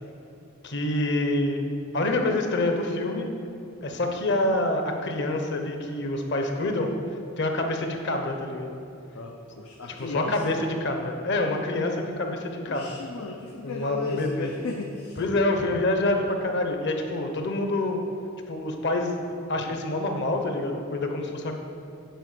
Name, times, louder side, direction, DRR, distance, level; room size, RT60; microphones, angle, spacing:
voice 1, 0.6-1.6 1.9-3.3 3.8-6.9 7.4-8.7 10.0-13.0 13.6-14.5 15.2-18.0 18.5-21.5, left 2 dB, 55° left, 4 dB, 1.0 m, -27 dB
voice 2, 9.1-10.4 12.7-15.2, left 3 dB, 90° left, 1 dB, 0.7 m, -34 dB
9.2 x 4.3 x 6.7 m, 2.7 s
head